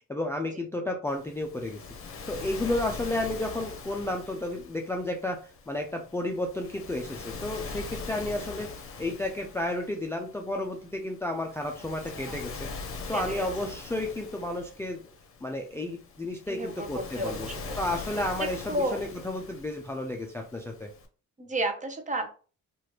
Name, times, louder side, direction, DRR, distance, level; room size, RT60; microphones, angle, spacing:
voice 1, 0.1-1.8 2.3-12.7 13.1-15.0 15.4-17.5 17.8-20.9, left 1 dB, 10° left, 2 dB, 0.4 m, -32 dB
Waves surf, 1.1-21.1, left 4 dB, 45° left, 0.7 m, -42 dB
voice 2, 12.1-12.5 13.1-13.5 16.5-17.8 18.4-19.0 21.4-22.3, right 1 dB, 25° right, 5 dB, 0.7 m, -33 dB
3.0 x 2.4 x 2.9 m, 0.39 s
cardioid pair, 90°, 30 cm